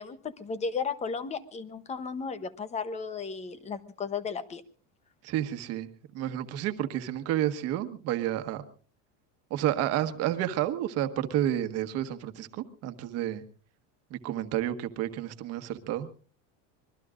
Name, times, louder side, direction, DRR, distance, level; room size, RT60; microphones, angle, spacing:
voice 1, 0.0-4.6, left 5 dB, 20° left, 14 dB, 0.8 m, -34 dB
voice 2, 5.2-8.6 9.5-13.4 14.1-16.1, right 12 dB, 45° right, 10 dB, 1.4 m, -30 dB
25.5 x 21.5 x 2.5 m, 0.40 s
cardioid pair, 165°, 36 cm